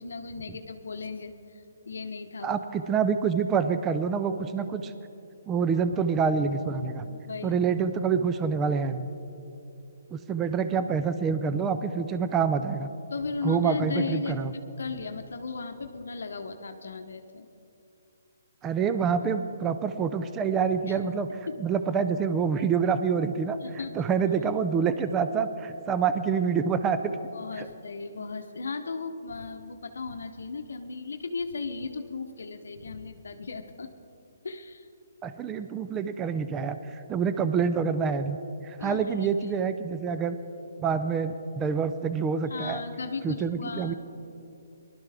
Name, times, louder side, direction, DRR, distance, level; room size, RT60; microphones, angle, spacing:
voice 1, 0.0-2.8 7.1-7.6 13.1-14.3 14.8-17.5 20.9-21.0 21.5-21.6 23.6-24.1 27.3-33.9 34.4-34.9 38.8-39.3 42.5-43.9, left 4 dB, 80° left, 7 dB, 0.8 m, -36 dB
voice 2, 2.4-4.9 5.5-7.1 7.4-9.1 10.1-12.9 13.4-14.5 18.6-21.3 21.6-27.1 27.6-27.7 35.2-38.4 38.6-40.4 40.8-42.8 43.2-43.9, right 6 dB, 15° right, 10 dB, 0.4 m, -27 dB
19.5 x 12.0 x 3.4 m, 2.6 s
hypercardioid pair, 155°, 0 cm